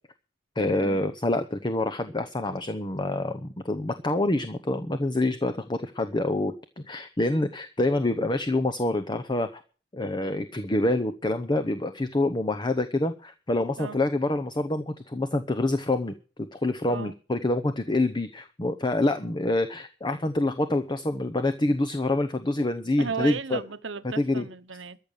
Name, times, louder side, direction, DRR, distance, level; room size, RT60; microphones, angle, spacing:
voice 1, 0.6-9.6 9.9-16.1 16.5-23.6 24.2-24.5, left 2 dB, 25° left, 0.8 m, -26 dB
voice 2, 23.0-25.0, right 5 dB, 70° right, 1.0 m, -35 dB
14.0 x 6.6 x 8.9 m
head